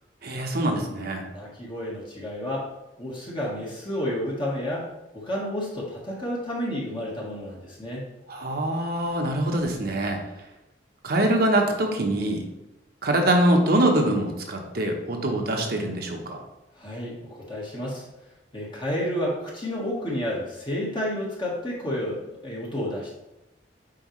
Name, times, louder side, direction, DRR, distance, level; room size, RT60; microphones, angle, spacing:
voice 1, 0.2-1.3 8.3-10.2 11.0-12.4 13.0-16.4, right 1 dB, 60° right, 2 dB, 1.0 m, -24 dB
voice 2, 1.3-2.7 3.0-4.9 5.1-8.0 16.7-18.0 18.5-23.1, left 1 dB, 30° left, -5 dB, 1.5 m, -30 dB
7.6 x 4.8 x 3.2 m, 0.94 s
head